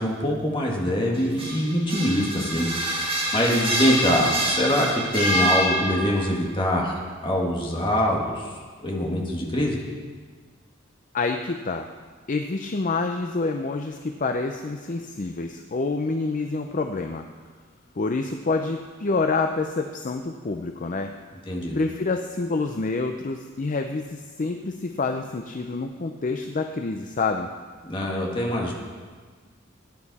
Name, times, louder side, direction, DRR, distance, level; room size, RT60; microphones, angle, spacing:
voice 1, 0.0-8.5 8.8-9.8 21.5-21.8 27.8-28.7, equal, 25° left, -2 dB, 1.9 m, -24 dB
sound 1, 1.1-6.3, equal, 30° right, 1.9 m, -26 dB
voice 2, 11.1-11.9 12.3-17.2 18.0-21.1 21.7-27.5, left 3 dB, 40° left, 5 dB, 0.5 m, -27 dB
15.5 x 9.4 x 4.2 m, 1.5 s
head